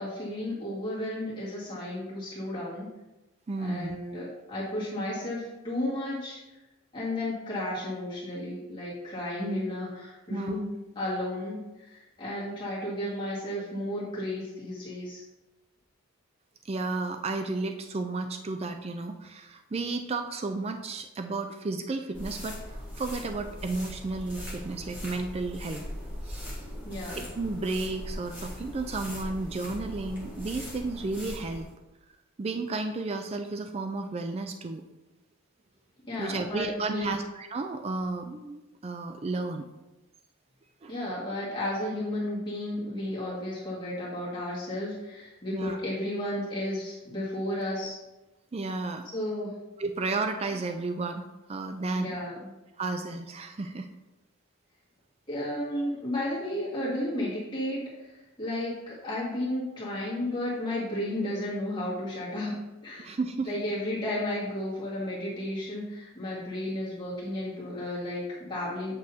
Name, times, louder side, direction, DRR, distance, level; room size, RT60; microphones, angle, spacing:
voice 1, 0.0-2.9 3.6-6.4 6.9-15.2 26.8-27.2 36.1-37.2 40.9-48.0 49.1-49.6 51.9-52.5 55.3-63.1 63.5-69.0, left 1 dB, 20° left, -8 dB, 1.9 m, -33 dB
voice 2, 3.5-4.0 10.3-10.6 16.6-25.9 26.2-26.7 27.4-31.7 32.4-34.8 36.2-39.7 40.8-41.0 45.5-45.8 48.5-49.1 49.8-52.1 52.8-53.9 63.0-63.5, right 3 dB, 30° right, 6 dB, 0.3 m, -33 dB
sound 1, 22.1-31.7, equal, 10° right, 1.6 m, -40 dB
8.3 x 6.3 x 2.8 m, 1.0 s
head